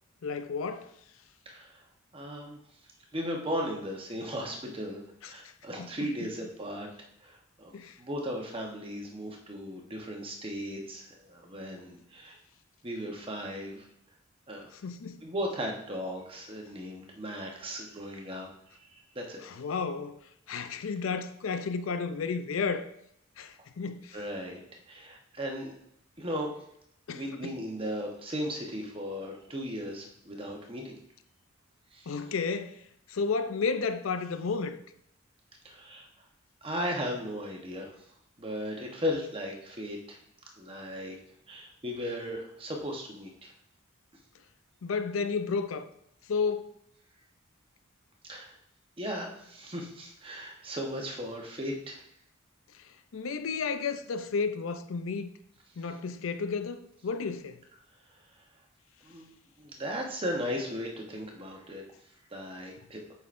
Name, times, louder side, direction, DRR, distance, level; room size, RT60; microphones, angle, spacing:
voice 1, 0.2-0.9 5.2-5.3 5.8-6.3 7.7-8.0 14.7-15.3 19.4-22.9 23.4-24.2 27.1-27.5 32.1-32.8 33.1-34.8 44.8-45.9 46.3-46.7 52.7-52.8 53.1-55.3 55.8-57.6, left 5 dB, 90° left, 0.5 m, -32 dB
voice 2, 1.5-1.8 2.1-2.6 3.1-6.9 7.2-7.7 8.0-12.4 12.8-13.9 14.5-14.7 15.2-18.5 18.9-19.4 24.1-25.7 26.2-26.5 27.1-31.0 31.9-32.1 35.6-36.1 36.6-37.9 38.4-40.2 40.6-41.2 41.5-43.5 48.3-48.5 49.0-52.0 59.0-59.3 59.6-61.8 62.3-63.0, equal, 25° right, 1.0 m, -36 dB
7.8 x 5.6 x 2.6 m
head